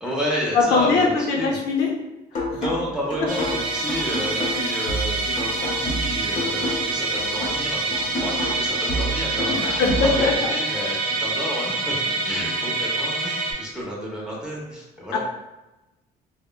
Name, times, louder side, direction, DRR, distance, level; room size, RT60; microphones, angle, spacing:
voice 1, 0.0-1.6 2.5-11.9 12.2-15.2, equal, 5° right, -5 dB, 0.8 m, -31 dB
voice 2, 0.5-1.9 2.3-2.6 9.5-10.5 15.1-15.2, left 4 dB, 85° left, 0 dB, 0.6 m, -21 dB
sound 1, 2.3-10.3, equal, 50° left, 0.9 m, -29 dB
Musical instrument, 3.3-13.5, right 2 dB, 60° right, 0.6 m, -26 dB
2.9 x 2.1 x 2.2 m, 1.0 s
cardioid pair, 110°, 17 cm